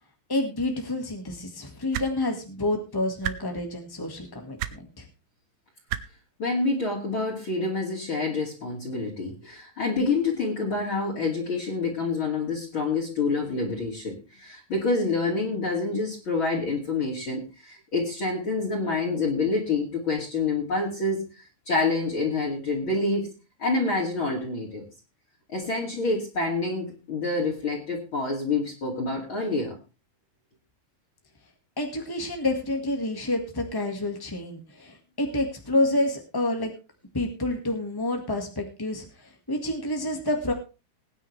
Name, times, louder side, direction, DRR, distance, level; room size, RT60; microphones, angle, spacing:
voice 1, 0.3-5.0 31.8-36.7 37.1-39.1 39.5-40.5, left 1 dB, 20° left, 4 dB, 0.6 m, -28 dB
sound 1, 1.9-2.1 3.2-3.4 4.6-4.7 5.9-6.0 7.3-7.4, right 12 dB, 75° right, 2.1 m, -29 dB
voice 2, 6.4-23.3 23.6-24.9 25.5-29.8, left 3 dB, 40° left, -3 dB, 3.1 m, -27 dB
20.5 x 9.6 x 3.3 m, 0.31 s
omnidirectional pair, 4.0 m